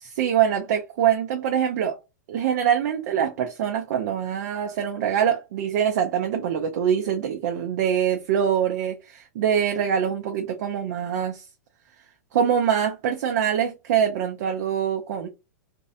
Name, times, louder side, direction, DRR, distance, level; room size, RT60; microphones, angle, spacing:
voice 1, 0.0-2.0 2.3-11.4 12.3-15.3, right 8 dB, 60° right, 0.5 m, -24 dB
2.5 x 2.0 x 2.6 m
hypercardioid pair, 145°, 10 cm